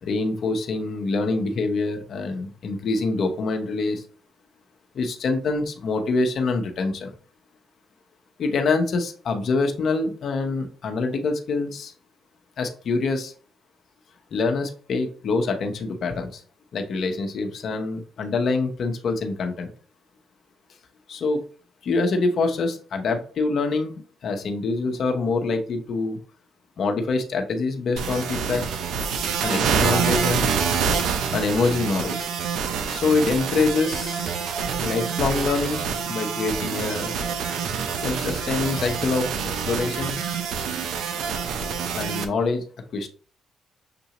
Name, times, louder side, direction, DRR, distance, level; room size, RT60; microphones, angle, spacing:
voice 1, 0.0-4.0 4.9-7.1 8.4-11.9 12.6-13.3 14.3-16.4 16.7-19.7 21.1-21.4 21.8-26.2 26.8-28.6 29.4-30.5 31.3-32.2 32.9-34.4 34.8-37.1 38.0-39.3 39.7-40.2 41.9-42.6 42.9-43.1, left 3 dB, 60° left, 4 dB, 0.9 m, -25 dB
sound 1, 28.0-42.2, right 6 dB, 80° right, 0.6 m, -26 dB
6.7 x 2.6 x 3.0 m, 0.41 s
cardioid pair, 90°, 0 cm